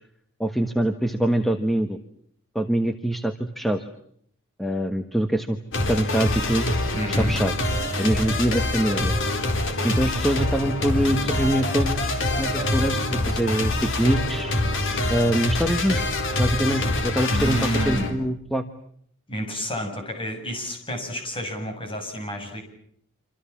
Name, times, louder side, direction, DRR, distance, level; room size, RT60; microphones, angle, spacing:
voice 1, 0.4-2.0 2.5-3.8 4.6-6.8 7.2-7.5 8.0-9.1 9.8-12.1 12.4-14.5 15.1-16.1 16.4-18.6, right 1 dB, ahead, 7 dB, 1.3 m, -24 dB
sound 1, 5.7-18.1, left 1 dB, 60° left, 4.3 m, -25 dB
voice 2, 6.9-7.4 17.3-18.2 19.3-22.6, equal, 25° left, 5 dB, 7.6 m, -30 dB
27.5 x 27.0 x 7.3 m, 0.68 s
head